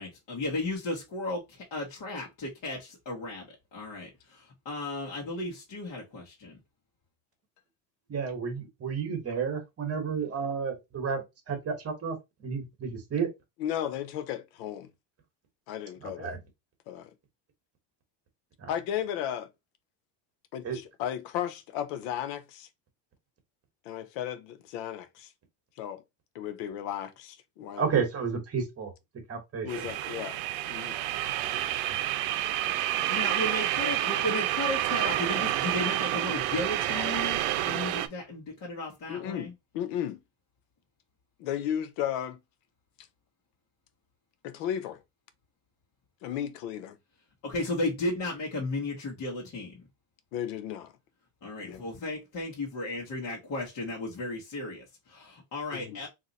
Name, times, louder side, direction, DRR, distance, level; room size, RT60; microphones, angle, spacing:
voice 1, 0.0-3.5 3.7-6.6 32.9-39.5 47.4-49.7 51.4-56.1, left 2 dB, 40° left, 1.3 m, -34 dB
voice 2, 8.1-12.2 12.4-13.3 16.0-16.4 18.6-18.7 20.6-20.8 27.8-28.9 29.3-29.7, right 6 dB, 30° right, 1.3 m, -31 dB
voice 3, 13.6-14.9 15.7-16.4 16.9-17.1 18.7-19.5 20.5-22.7 23.8-25.3 25.8-26.0 26.3-27.9 29.6-30.4 30.7-31.0 39.1-40.2 41.4-42.4 44.4-45.0 46.2-47.0 50.3-50.9 51.6-51.9 55.7-56.0, left 10 dB, 85° left, 0.8 m, -34 dB
sound 1, 29.7-38.1, right 13 dB, 75° right, 0.6 m, -29 dB
2.8 x 2.4 x 3.9 m
cardioid pair, 130°, 47 cm